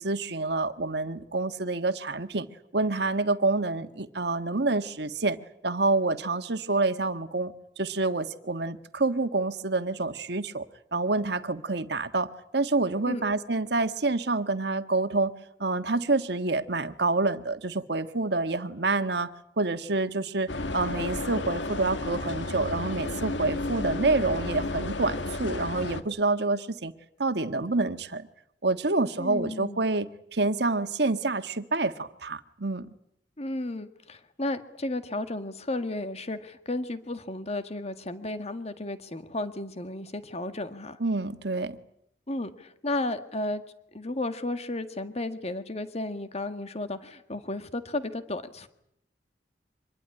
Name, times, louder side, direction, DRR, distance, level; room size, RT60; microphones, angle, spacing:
voice 1, 0.0-2.5 2.7-5.4 5.6-15.3 15.6-19.3 19.6-26.9 27.2-28.3 28.6-32.9 41.0-41.8, right 3 dB, 65° right, 9 dB, 1.6 m, -27 dB
sound 1, 20.5-26.0, left 2 dB, 80° left, 1.9 m, -32 dB
voice 2, 29.2-29.8 33.4-41.0 42.3-43.6 43.9-48.7, left 2 dB, 35° left, 9 dB, 1.8 m, -33 dB
25.5 x 21.5 x 9.8 m, 0.76 s
head